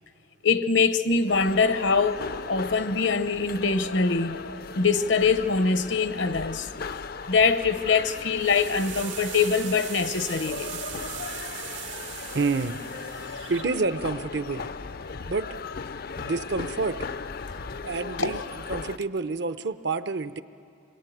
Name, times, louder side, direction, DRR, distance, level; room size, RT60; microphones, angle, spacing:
voice 1, 0.4-4.4 4.8-6.7 7.3-10.8 13.1-13.5 18.2-18.4, left 4 dB, 70° left, 1.0 m, -24 dB
sound 1, 1.3-19.0, left 4 dB, 55° left, 0.5 m, -37 dB
sound 2, 7.7-13.6, right 9 dB, 90° right, 2.1 m, -39 dB
voice 2, 12.3-12.8 13.5-14.7 15.3-15.5 16.2-17.0 17.8-20.4, right 4 dB, 60° right, 0.7 m, -28 dB
26.5 x 22.5 x 9.3 m
head